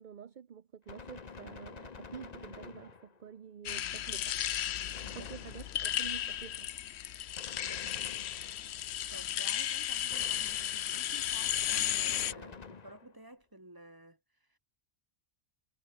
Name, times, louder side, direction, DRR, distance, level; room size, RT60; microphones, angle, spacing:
voice 1, 0.0-6.7, right 7 dB, 45° right, 0.9 m, -49 dB
Gunshot gunfire, 0.9-3.4 4.9-6.0 7.3-8.8 10.1-10.9 12.1-13.3, left 5 dB, 40° left, 1.1 m, -49 dB
sound 1, 3.7-12.3, left 11 dB, 75° left, 0.9 m, -34 dB
voice 2, 5.0-5.6 7.7-8.2 9.1-14.6, right 1 dB, 20° right, 3.0 m, -53 dB
omnidirectional pair, 1.2 m